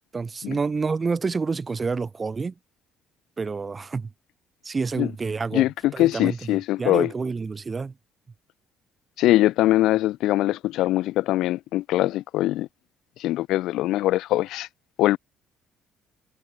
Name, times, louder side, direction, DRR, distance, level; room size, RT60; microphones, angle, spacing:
voice 1, 0.1-2.5 3.4-4.1 4.6-5.7 5.9-7.9, right 4 dB, 30° right, 2.3 m, -28 dB
voice 2, 5.5-7.1 9.2-12.7 13.2-14.7 15.0-15.2, left 15 dB, 75° left, 0.4 m, -22 dB
supercardioid pair, 80°, 0 cm